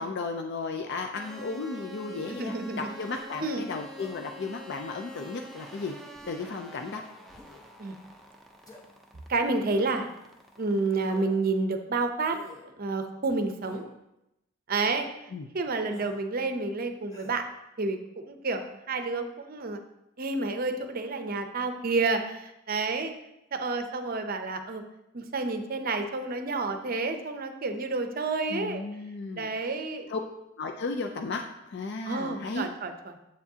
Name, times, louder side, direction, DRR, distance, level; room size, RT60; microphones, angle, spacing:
voice 1, 0.0-7.0 15.3-15.5 28.5-29.5 30.1-30.2 30.6-32.7, left 3 dB, 55° left, 4 dB, 0.4 m, -34 dB
sound 1, 1.2-11.3, equal, ahead, 0.6 m, -48 dB
sound 2, 1.9-2.4 3.0-3.3 4.0-4.2 5.0-5.5 6.1-6.5 7.3-7.7 8.6-8.8 9.7-10.1 11.0-11.5 12.3-12.7 13.6-13.9 14.8-15.1 15.9-16.2 17.1-17.4, left 2 dB, 20° left, 1.0 m, -49 dB
voice 2, 2.4-2.9 3.4-3.6 7.8-8.0 9.3-10.1 10.6-12.4 12.7-13.9 14.7-15.1 15.5-17.4 17.8-19.8 20.2-23.1 23.5-24.8 25.1-28.8 29.4-30.1 32.0-33.1, right 3 dB, 50° right, 7 dB, 0.6 m, -30 dB
7.4 x 7.1 x 2.8 m, 0.86 s
head